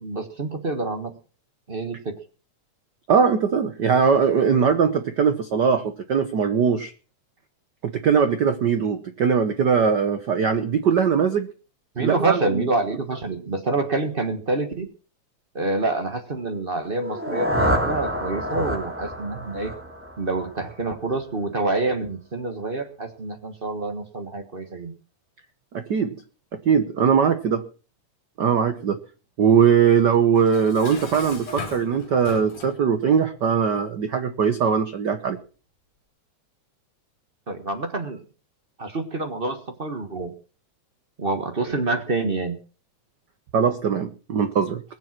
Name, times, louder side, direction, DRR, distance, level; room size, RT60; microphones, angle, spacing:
voice 1, 0.0-1.2 1.7-2.2 11.9-14.9 15.5-19.7 20.2-24.9 37.5-38.2 38.8-40.3 41.2-42.6, right 2 dB, 50° right, 7 dB, 0.6 m, -27 dB
voice 2, 3.1-6.9 7.8-11.5 12.0-12.7 25.7-26.2 26.5-27.6 28.4-29.0 29.4-35.4 43.5-44.8, right 6 dB, 80° right, 10 dB, 0.9 m, -20 dB
sound 1, 16.9-20.9, equal, 5° right, 2.5 m, -27 dB
Dishes pots and pans, 30.4-32.8, left 4 dB, 65° left, 4.6 m, -38 dB
21.5 x 7.6 x 5.9 m, 0.37 s
omnidirectional pair, 3.4 m